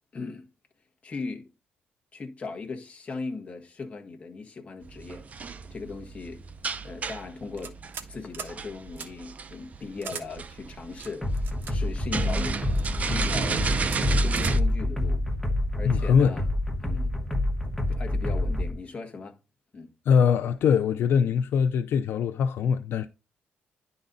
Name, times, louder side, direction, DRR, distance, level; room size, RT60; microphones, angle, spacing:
voice 1, 0.1-0.5 1.0-1.5 2.1-5.3 5.7-6.4 6.8-7.8 8.1-12.6 13.0-13.7 14.2-15.2 15.7-16.5 16.8-17.1 17.9-19.4 19.7-19.9, left 4 dB, 35° left, 1.4 m, -38 dB
sound 1, 4.8-14.6, right 5 dB, 35° right, 0.6 m, -33 dB
sound 2, 7.6-8.1 8.3-8.5 9.0-9.1 10.0-10.3 11.0-11.7 12.5-12.9 13.4-13.6 13.9-14.0 14.3-14.6, right 6 dB, 65° right, 1.2 m, -39 dB
sound 3, 11.2-18.7, left 1 dB, ahead, 1.1 m, -27 dB
voice 2, 15.8-16.3 20.1-23.1, left 7 dB, 70° left, 0.5 m, -22 dB
10.5 x 4.1 x 4.0 m
cardioid pair, 125°, 4 cm